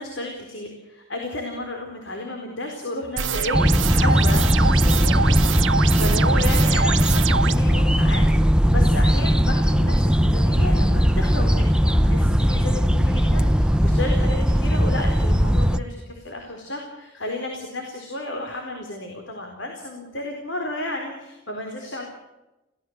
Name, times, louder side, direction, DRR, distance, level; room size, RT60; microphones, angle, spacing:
voice 1, 0.0-5.5 5.9-8.3 8.7-22.0, left 1 dB, 75° left, 2 dB, 4.1 m, -32 dB
sound 1, 3.2-7.6, right 6 dB, 75° right, 0.8 m, -25 dB
sound 2, 3.5-15.8, equal, 5° right, 0.7 m, -19 dB
23.5 x 17.0 x 8.0 m, 0.99 s
head